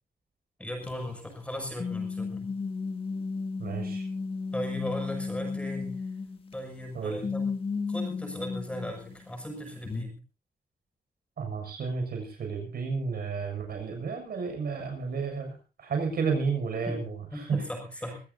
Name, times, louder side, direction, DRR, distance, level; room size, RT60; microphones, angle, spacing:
voice 1, 0.6-2.5 4.5-6.0 6.5-7.5 7.9-10.2 16.9-17.0 17.3-18.2, left 1 dB, 10° left, 3 dB, 6.7 m, -37 dB
sound 1, 0.8-1.1 1.8-6.9 7.2-9.6 9.8-10.0, left 4 dB, 35° left, 2.6 m, -34 dB
voice 2, 3.6-4.0 6.9-7.2 11.4-17.6, right 5 dB, 80° right, 4 dB, 6.6 m, -32 dB
24.0 x 16.5 x 2.7 m, 0.34 s
wide cardioid pair, 170°, 15 cm